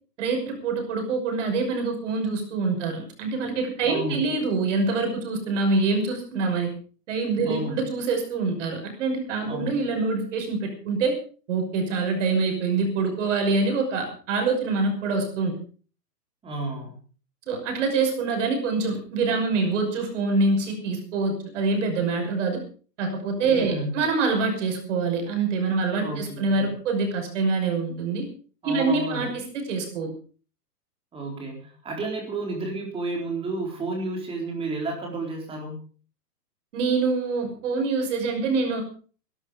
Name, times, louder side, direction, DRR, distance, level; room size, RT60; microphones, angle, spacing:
voice 1, 0.2-6.7 7.1-11.1 11.5-15.5 17.5-22.6 23.0-28.3 28.6-30.1 36.7-38.8, right 4 dB, 45° right, 3 dB, 6.0 m, -25 dB
voice 2, 3.9-4.3 7.5-7.8 9.5-9.8 16.4-17.0 23.5-24.0 26.0-26.7 28.6-29.4 31.1-35.8, right 2 dB, 10° right, 1 dB, 4.2 m, -31 dB
20.0 x 12.0 x 5.1 m, 0.41 s
hypercardioid pair, 160°, 49 cm